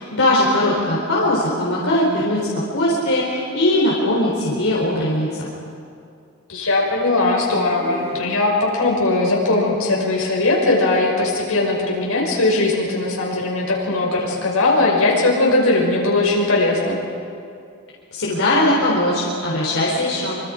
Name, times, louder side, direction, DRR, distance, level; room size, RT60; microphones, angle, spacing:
voice 1, 0.0-2.5 2.7-5.5 18.1-20.4, left 1 dB, 70° left, -5 dB, 3.9 m, -20 dB
voice 2, 6.5-17.0, left 2 dB, 90° left, -2 dB, 5.8 m, -19 dB
sound 1, 7.7-8.8, left 2 dB, 30° right, 3.9 m, -32 dB
26.0 x 25.0 x 5.0 m, 2.4 s
head